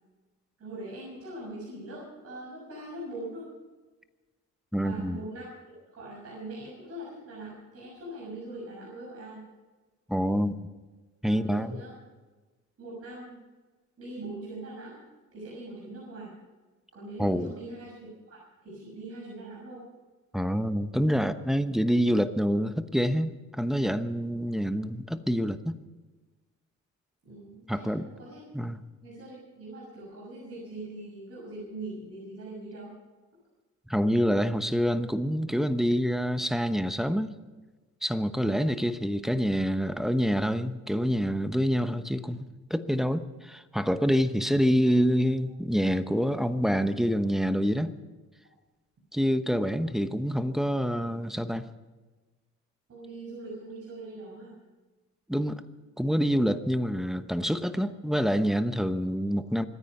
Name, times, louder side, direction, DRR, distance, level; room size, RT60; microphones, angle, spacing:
voice 1, 0.6-3.5 4.8-9.5 11.2-11.9 12.8-13.4 14.0-15.0 15.3-16.3 16.9-19.8 27.2-28.5 29.0-32.9 38.4-38.7 52.9-54.6, right 2 dB, 50° right, -5 dB, 6.6 m, -42 dB
voice 2, 4.7-5.2 10.1-10.5 11.2-11.8 17.2-17.5 20.3-25.8 27.7-28.1 28.5-28.8 33.9-37.3 38.0-48.0 49.1-51.6 55.3-55.6 56.0-59.7, equal, ahead, 9 dB, 1.0 m, -27 dB
25.5 x 9.8 x 5.6 m, 1.3 s
cardioid pair, 90°, 30 cm